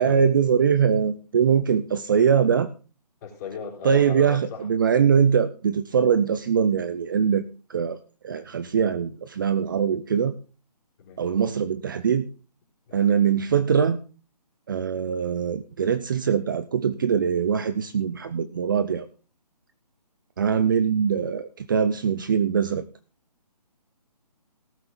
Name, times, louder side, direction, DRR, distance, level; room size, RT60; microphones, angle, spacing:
voice 1, 0.0-2.7 3.8-7.4 7.7-8.0 8.2-10.3 11.2-12.3 12.9-14.0 14.7-19.1 20.4-22.8, right 7 dB, 30° right, 12 dB, 0.6 m, -22 dB
voice 2, 3.2-4.7 11.0-11.2 12.9-13.0 20.6-20.8, left 6 dB, 25° left, -2 dB, 4.4 m, -37 dB
18.0 x 7.8 x 3.9 m, 0.36 s
figure-of-eight pair, 155°, 21 cm